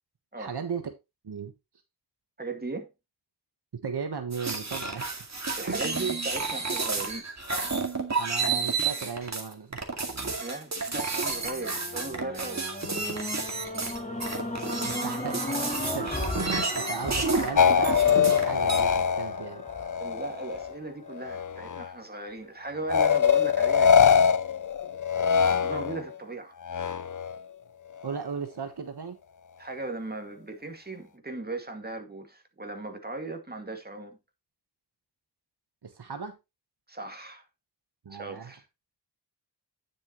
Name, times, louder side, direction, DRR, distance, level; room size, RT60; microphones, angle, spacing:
voice 1, 0.4-0.9 1.2-1.5 3.7-5.2 8.2-9.9 14.9-15.4 15.9-16.3 16.8-19.6 28.0-29.2 35.8-36.4 38.0-38.5, right 6 dB, 70° right, 1.3 m, -36 dB
voice 2, 2.4-2.9 4.9-5.0 5.6-7.2 10.4-12.6 20.0-24.0 25.6-26.6 29.6-34.2 36.9-37.4 38.1-38.6, right 3 dB, 25° right, 2.1 m, -37 dB
sound 1, 4.3-18.8, right 4 dB, 40° right, 2.3 m, -31 dB
sound 2, 11.0-21.3 21.9-22.0, left 1 dB, 20° left, 3.0 m, -36 dB
sound 3, 17.6-20.8 21.1-21.9 22.9-26.1 26.6-27.4, left 7 dB, 50° left, 0.6 m, -23 dB
10.0 x 7.0 x 3.1 m
wide cardioid pair, 95°, 41 cm